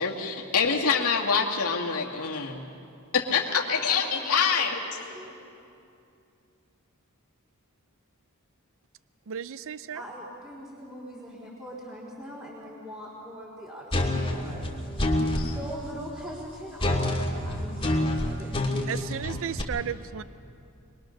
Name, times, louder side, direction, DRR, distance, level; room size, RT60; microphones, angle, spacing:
voice 1, 0.0-2.6 3.1-4.8, left 6 dB, 90° left, -1 dB, 2.2 m, -25 dB
voice 2, 3.8-5.4 9.9-14.7 15.3-18.6, equal, 15° right, -7 dB, 3.9 m, -42 dB
voice 3, 9.3-10.0 18.9-20.2, right 8 dB, 65° right, 15 dB, 0.5 m, -34 dB
sound 1, 13.9-15.5 16.8-19.6, left 1 dB, 25° left, 2.6 m, -27 dB
23.5 x 22.5 x 6.6 m, 2.6 s
head